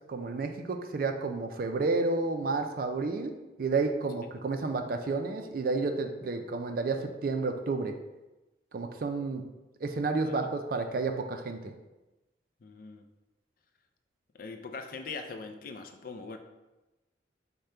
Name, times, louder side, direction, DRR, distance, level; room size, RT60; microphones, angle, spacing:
voice 1, 0.1-7.9 8.7-9.4 9.8-11.7, right 3 dB, 50° right, 6 dB, 0.4 m, -31 dB
voice 2, 12.6-13.0 14.3-16.4, left 4 dB, 50° left, 6 dB, 0.4 m, -41 dB
5.1 x 2.2 x 4.3 m, 1.0 s
head